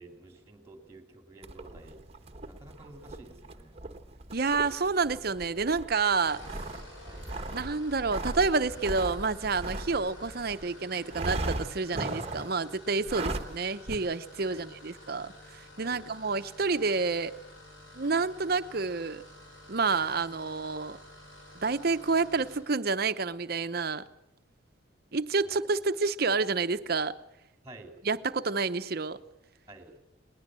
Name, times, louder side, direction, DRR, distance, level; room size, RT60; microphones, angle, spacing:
voice 1, 0.0-2.0 2.5-3.8 7.0-7.3 14.5-14.7 15.8-16.1 27.6-27.9 29.7-29.9, right 2 dB, 15° right, 2.7 m, -50 dB
sound 1, 1.4-10.7 11.1-12.6 13.0-13.6 13.9-14.0, right 2 dB, 30° right, 1.2 m, -38 dB
voice 2, 4.3-6.4 7.5-17.4 17.9-19.2 19.7-21.0 21.5-24.0 25.1-27.2 28.0-29.2, right 4 dB, 50° right, 0.8 m, -29 dB
sound 2, 6.2-22.7, left 1 dB, 90° left, 7.2 m, -51 dB
21.0 x 19.5 x 7.6 m
head